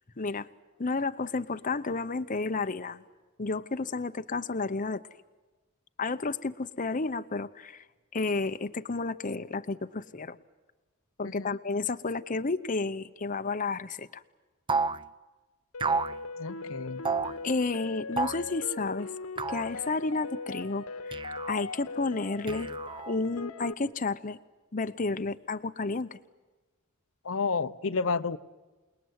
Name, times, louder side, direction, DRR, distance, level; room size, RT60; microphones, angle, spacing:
voice 1, 0.2-0.5 0.8-3.0 3.4-5.0 6.0-7.8 8.1-10.4 11.2-14.2 17.4-19.1 19.5-21.2 21.5-22.7 23.1-24.4 24.7-26.2, left 3 dB, 40° left, 9 dB, 0.8 m, -31 dB
voice 2, 11.2-11.6 16.4-17.0 27.2-28.4, left 4 dB, 70° left, 11 dB, 0.9 m, -31 dB
sound 1, 14.7-15.0 15.8-16.2 17.0-17.4 18.2-18.5 19.4-19.7 21.1-21.6 22.5-23.2, right 4 dB, 25° right, 0.8 m, -30 dB
sound 2, 15.7-23.7, left 3 dB, 90° left, 1.5 m, -40 dB
28.5 x 20.0 x 9.5 m, 1.3 s
head